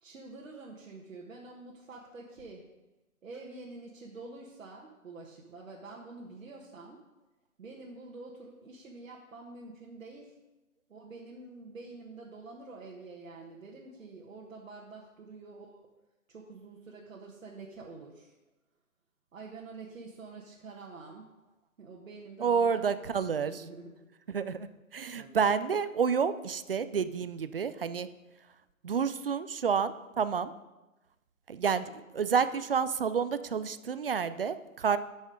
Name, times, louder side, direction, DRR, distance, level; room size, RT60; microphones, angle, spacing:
voice 1, 0.0-2.7 3.2-7.0 7.6-10.4 10.9-15.9 16.3-18.4 19.3-21.3 21.8-23.0 23.4-24.1 25.1-25.5, right 3 dB, 65° right, -2 dB, 1.6 m, -47 dB
voice 2, 22.4-23.7 24.3-24.7 24.9-28.1 28.8-30.5 31.5-35.0, right 6 dB, 45° right, 13 dB, 0.4 m, -29 dB
9.2 x 6.3 x 5.0 m, 1.0 s
hypercardioid pair, 150°, 43 cm